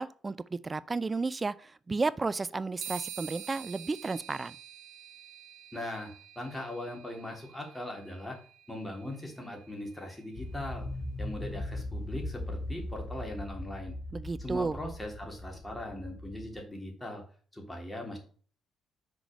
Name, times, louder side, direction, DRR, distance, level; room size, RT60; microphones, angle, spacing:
voice 1, 0.0-4.6 14.1-14.8, right 3 dB, 25° right, 0.4 m, -33 dB
sound 1, 2.8-10.5, right 9 dB, 75° right, 1.1 m, -47 dB
voice 2, 5.7-6.1 6.3-8.4 8.7-10.9 11.2-13.9 14.4-17.2 17.5-18.2, left 1 dB, 10° left, 3.1 m, -40 dB
sound 2, 10.3-16.6, left 1 dB, 40° left, 1.5 m, -39 dB
6.3 x 4.8 x 6.5 m
cardioid pair, 90°, 0 cm